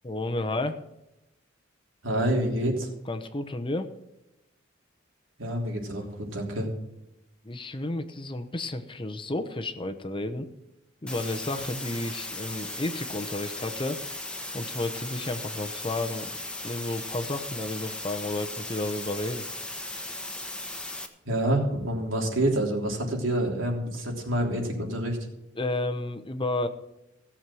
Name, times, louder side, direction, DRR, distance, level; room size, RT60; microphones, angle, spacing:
voice 1, 0.0-0.8 3.1-3.9 7.4-10.5 11.0-14.0 14.5-16.3 16.6-19.5 25.6-26.7, left 2 dB, 25° left, 7 dB, 0.9 m, -31 dB
voice 2, 2.0-2.9 5.4-6.7 21.2-25.3, right 1 dB, 85° right, 0 dB, 3.4 m, -27 dB
sound 1, 11.1-21.1, left 2 dB, 5° left, 1.3 m, -37 dB
16.5 x 7.4 x 6.2 m, 0.92 s
head